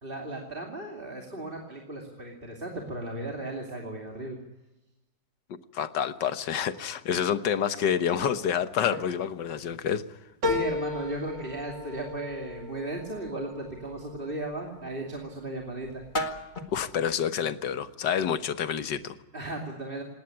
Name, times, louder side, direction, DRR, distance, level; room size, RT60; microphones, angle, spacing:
voice 1, 0.0-4.4 10.5-16.0 19.3-20.0, right 2 dB, 30° right, 0 dB, 2.9 m, -36 dB
voice 2, 5.5-10.2 16.7-19.2, left 8 dB, 75° left, 11 dB, 1.8 m, -28 dB
sound 1, 7.6-18.2, left 1 dB, 25° left, 1.9 m, -43 dB
sound 2, 10.4-15.2 15.7-16.4 16.7-16.8, left 4 dB, 85° right, 3.5 m, -35 dB
19.5 x 18.5 x 9.7 m, 1.0 s
omnidirectional pair, 1.9 m